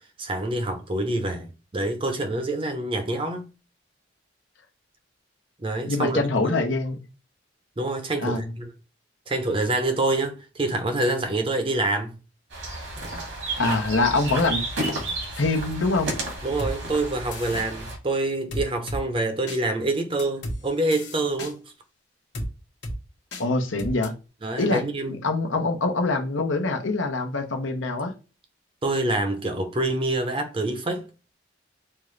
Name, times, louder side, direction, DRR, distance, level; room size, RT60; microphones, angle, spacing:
voice 1, 0.2-3.5 5.6-6.6 7.8-8.7 9.3-12.2 16.4-21.6 24.4-25.2 28.8-31.1, right 2 dB, 25° right, 0.6 m, -26 dB
voice 2, 5.9-7.0 8.2-8.4 13.6-14.6 15.4-16.1 23.4-24.1 24.6-24.8 25.2-28.1, left 3 dB, 85° left, 0.9 m, -24 dB
sound 1, 12.5-18.0, right 2 dB, 80° right, 1.8 m, -32 dB
sound 2, 16.6-16.7 17.3-17.7 18.5-19.0 19.5-19.6 20.2-20.6 20.9-21.5 22.3-22.5 22.8-23.0 23.3-23.4 23.8-24.1, equal, 65° left, 1.0 m, -32 dB
5.4 x 2.5 x 3.2 m
head